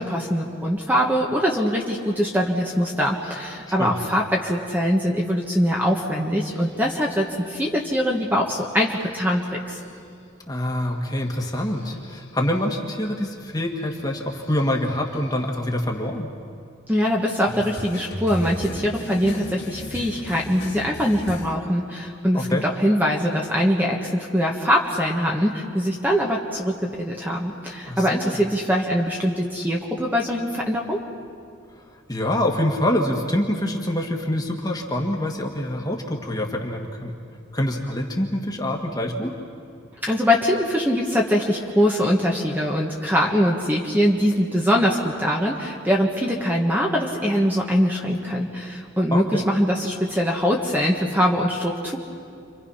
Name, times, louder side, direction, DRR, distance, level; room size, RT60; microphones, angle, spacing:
voice 1, 0.0-9.8 16.9-31.0 40.0-52.0, equal, 10° right, -1 dB, 1.5 m, -22 dB
sound 1, 6.4-7.3 8.6-9.5 9.8-10.0 11.2-12.7 13.9-15.3 17.4-21.6, left 1 dB, 55° left, 3.1 m, -37 dB
voice 2, 10.5-16.3 22.3-22.7 27.9-28.4 32.1-37.1 37.5-39.4 49.1-49.4, left 1 dB, 20° left, 1 dB, 2.0 m, -25 dB
30.0 x 25.5 x 5.8 m, 2.3 s
head